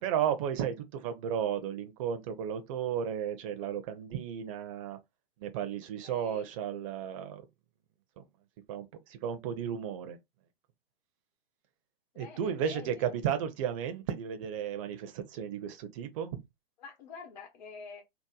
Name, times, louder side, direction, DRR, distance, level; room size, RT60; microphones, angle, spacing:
voice 1, 0.0-5.0 5.4-7.4 8.2-8.3 8.7-10.2 12.2-16.4, right 8 dB, 35° right, 0.6 m, -34 dB
voice 2, 6.0-6.5 12.1-13.1 16.8-18.0, left 5 dB, 45° left, 1.0 m, -47 dB
2.9 x 2.0 x 3.8 m
figure-of-eight pair, 110°, 30 cm